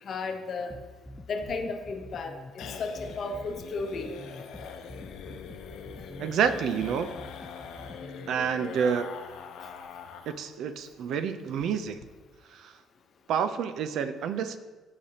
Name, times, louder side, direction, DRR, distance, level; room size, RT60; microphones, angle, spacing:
voice 1, 0.1-0.7 1.3-4.1, left 3 dB, 45° left, 5 dB, 0.8 m, -34 dB
sound 1, 0.7-8.3, left 1 dB, 5° left, 0.4 m, -46 dB
sound 2, 1.4-10.5 10.8-10.9 11.2-11.3 11.6-12.0, left 6 dB, 75° left, 0.7 m, -43 dB
voice 2, 6.2-7.2 8.3-9.1 10.3-12.1 12.5-12.7 13.3-14.6, right 7 dB, 60° right, 10 dB, 0.5 m, -28 dB
15.0 x 5.1 x 2.9 m, 1.3 s
cardioid pair, 145°, 0 cm